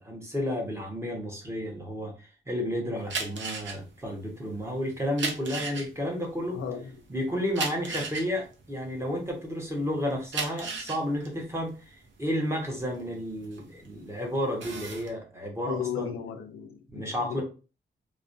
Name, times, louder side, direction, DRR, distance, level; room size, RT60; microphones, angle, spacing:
voice 1, 0.0-6.6 7.1-16.1 16.9-17.4, equal, 15° right, 0.7 m, -32 dB
sound 1, 3.0-9.6 10.1-14.0 14.4-15.1, right 4 dB, 65° right, 0.6 m, -36 dB
voice 2, 6.5-7.0 15.7-17.4, left 8 dB, 85° left, 0.5 m, -35 dB
2.4 x 2.1 x 2.5 m
wide cardioid pair, 145°, 21 cm